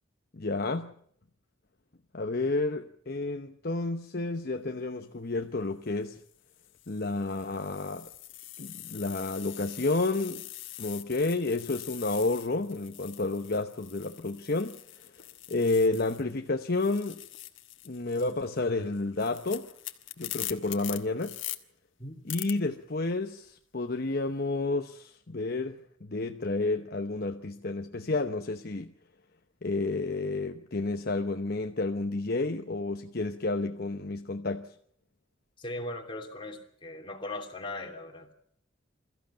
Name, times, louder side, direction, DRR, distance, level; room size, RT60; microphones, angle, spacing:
voice 1, 0.3-0.9 2.1-6.2 6.9-8.1 8.6-10.4 10.8-15.2 15.5-17.2 17.8-19.7 20.2-21.4 22.2-28.9 29.6-34.7, left 3 dB, 50° left, 0.9 m, -30 dB
sound 1, 5.2-5.5 6.2-16.4 16.6-21.6 22.3-22.5, left 15 dB, 75° left, 1.4 m, -43 dB
voice 2, 35.6-38.3, left 2 dB, 25° left, 2.9 m, -39 dB
23.0 x 14.5 x 8.9 m
head